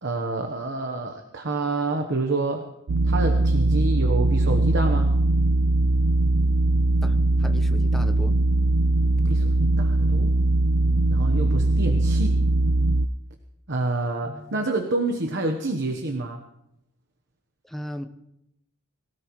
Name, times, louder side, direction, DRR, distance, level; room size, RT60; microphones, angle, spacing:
voice 1, 0.0-2.7 3.0-5.1 9.2-10.3 11.1-12.4 13.7-16.4, right 2 dB, 55° right, 4 dB, 1.1 m, -28 dB
sound 1, 2.9-13.1, right 2 dB, 85° right, 0.6 m, -21 dB
voice 2, 7.0-8.4 17.6-18.1, equal, ahead, 5 dB, 0.8 m, -36 dB
22.5 x 16.5 x 3.1 m, 0.83 s
head